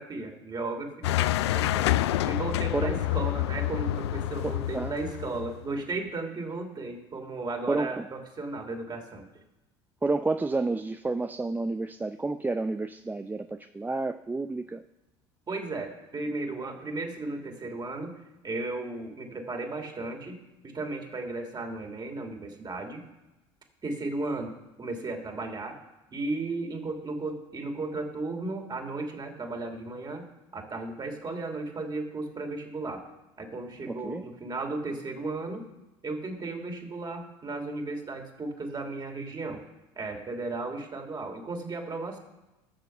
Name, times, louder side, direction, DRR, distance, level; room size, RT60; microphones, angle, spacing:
voice 1, 0.0-1.9 2.2-9.3 15.5-18.2 18.4-20.4 20.6-23.0 23.8-25.8 26.1-30.2 30.5-33.0 33.4-35.6 36.0-39.6 39.9-42.2, right 3 dB, 30° right, 3 dB, 3.0 m, -35 dB
sound 1, 1.0-5.7, left 14 dB, 80° left, 0.4 m, -28 dB
voice 2, 2.7-3.0 4.4-5.3 7.7-8.1 10.0-14.8 33.9-34.2, right 3 dB, 15° right, 9 dB, 0.5 m, -30 dB
13.0 x 7.0 x 6.8 m, 1.0 s
hypercardioid pair, 70°, 14 cm